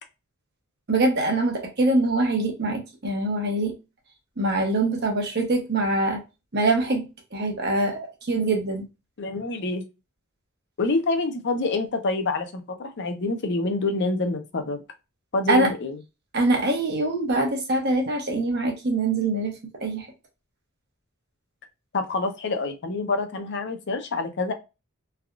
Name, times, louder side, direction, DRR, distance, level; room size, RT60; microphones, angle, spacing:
voice 1, 0.9-3.7 4.4-6.2 6.5-7.1 7.3-8.8 15.5-15.7 16.3-19.6 19.8-20.1, right 2 dB, 50° right, 1.0 m, -23 dB
voice 2, 9.2-9.8 10.8-14.8 15.3-16.0 21.9-24.5, left 3 dB, 55° left, 0.6 m, -26 dB
3.4 x 2.3 x 2.3 m
head